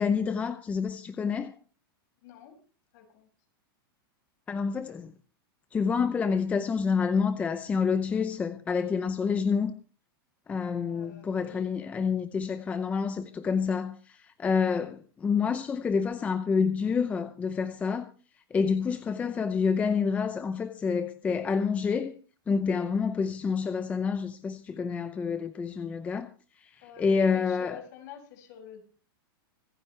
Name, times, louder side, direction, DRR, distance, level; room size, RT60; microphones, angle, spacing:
voice 1, 0.0-1.5 4.5-5.1 5.7-9.7 10.5-18.1 18.5-22.1 22.5-26.3 26.6-27.8, left 5 dB, 10° left, 0.6 m, -28 dB
voice 2, 2.2-2.6 2.9-3.3 10.9-11.7 26.8-28.8, left 8 dB, 50° left, 6.6 m, -48 dB
26.0 x 9.6 x 3.3 m
supercardioid pair, 160°, 13 cm